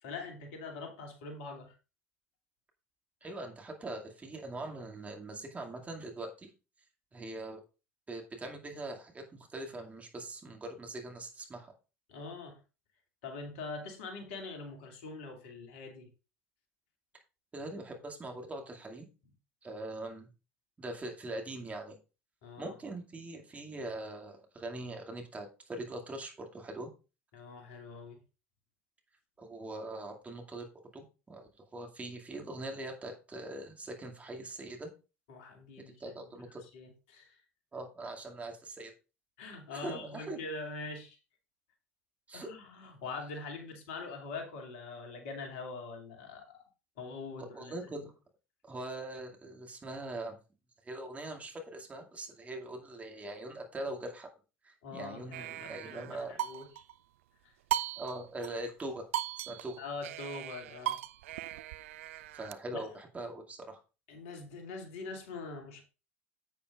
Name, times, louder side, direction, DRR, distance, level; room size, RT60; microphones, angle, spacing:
voice 1, 0.0-1.7 3.2-3.3 12.1-12.6 13.2-16.1 22.4-22.7 27.3-28.2 35.3-36.0 36.6-37.4 39.4-41.2 42.3-46.6 47.0-47.9 54.8-56.7 59.8-61.0 62.0-62.3 62.7-62.8 64.1-65.8, left 3 dB, 65° left, 3 dB, 2.4 m, -43 dB
voice 2, 3.2-6.5 7.1-7.6 8.1-11.7 17.5-19.1 19.6-20.3 20.8-22.0 22.6-26.9 29.4-30.7 30.9-34.9 36.0-36.6 37.7-38.9 39.7-40.4 42.3-42.5 47.4-48.1 48.6-50.4 50.8-54.3 54.6-56.4 58.0-59.1 59.4-59.8 62.3-63.8, right 2 dB, 20° right, 2 dB, 2.2 m, -42 dB
sound 1, 55.3-57.0 57.7-58.5 58.8-58.9 59.1-62.5, right 12 dB, 70° right, 0.4 m, -38 dB
10.5 x 8.4 x 2.4 m, 0.31 s
figure-of-eight pair, 75°, 7 cm